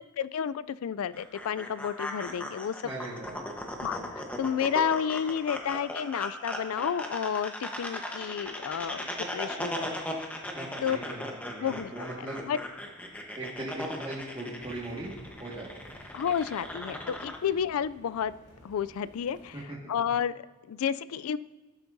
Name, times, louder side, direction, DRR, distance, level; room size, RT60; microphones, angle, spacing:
voice 1, 0.2-2.9 3.8-9.1 9.3-10.0 10.8-11.0 11.6-11.9 12.5-12.6 16.1-18.3 18.6-21.4, left 8 dB, 85° left, 17 dB, 0.4 m, -31 dB
sound 1, 1.1-17.4, left 1 dB, 5° left, 1.1 m, -38 dB
voice 2, 2.8-3.4 10.5-12.4 13.3-15.1 15.4-16.0 19.5-19.8, right 1 dB, 25° right, -6 dB, 1.7 m, -39 dB
sound 2, 14.6-19.7, equal, 35° left, 2.6 m, -54 dB
18.0 x 8.3 x 2.7 m, 1.3 s
head